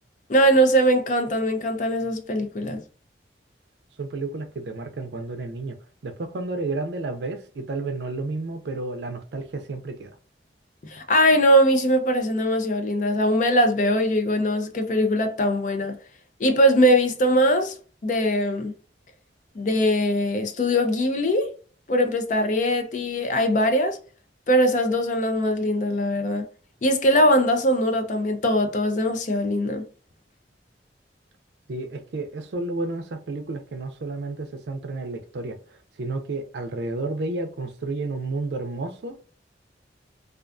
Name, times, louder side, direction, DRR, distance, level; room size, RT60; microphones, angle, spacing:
voice 1, 0.3-2.8 10.8-16.0 16.4-17.8 18.0-18.7 19.6-21.5 21.9-24.0 24.5-26.4 26.8-29.8, equal, 45° left, 0.4 m, -21 dB
voice 2, 4.0-5.8 6.0-10.1 31.7-35.6 36.0-39.2, right 3 dB, 70° right, 0.4 m, -31 dB
2.4 x 2.3 x 2.4 m
head